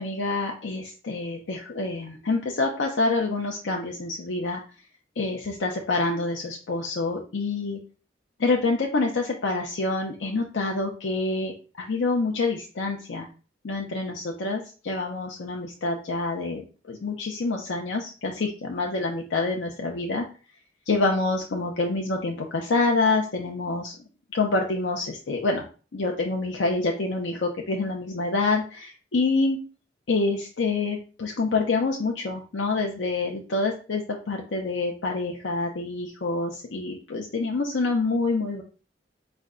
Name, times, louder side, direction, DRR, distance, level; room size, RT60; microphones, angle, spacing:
voice 1, 0.0-4.6 5.2-7.8 8.4-13.3 13.6-16.6 16.9-20.2 20.9-23.9 24.3-25.6 25.9-29.6 30.1-38.6, left 3 dB, 80° left, 1 dB, 0.6 m, -27 dB
5.1 x 2.2 x 3.6 m, 0.36 s
head